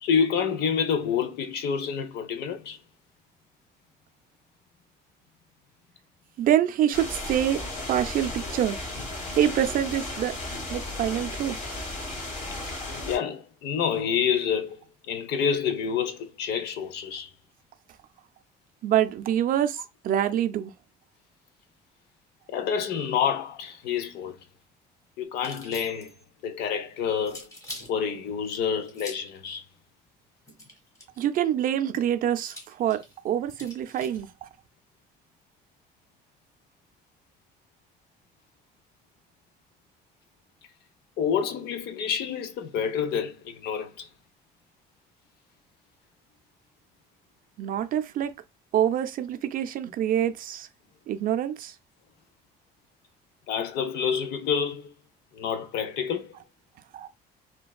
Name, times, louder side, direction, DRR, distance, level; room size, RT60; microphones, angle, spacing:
voice 1, 0.0-2.8 13.1-14.8 15.1-17.3 22.5-24.4 25.2-26.1 26.4-27.5 27.9-29.6 31.9-32.0 41.2-44.1 53.5-54.9 55.3-56.3, left 7 dB, 75° left, 0.6 m, -28 dB
voice 2, 6.4-7.6 7.9-8.8 9.4-10.4 10.7-11.6 18.8-19.8 20.0-20.7 31.2-34.5 47.6-48.3 48.7-50.7 51.1-51.7 56.9-57.1, right 10 dB, 55° right, 0.4 m, -26 dB
sound 1, 6.9-13.2, left 2 dB, 45° left, 1.4 m, -35 dB
sound 2, 25.3-26.2 27.2-27.9 28.9-29.4 30.5-31.2 32.4-34.2, left 1 dB, 20° left, 1.1 m, -43 dB
3.2 x 2.2 x 2.3 m
cardioid pair, 110°, 17 cm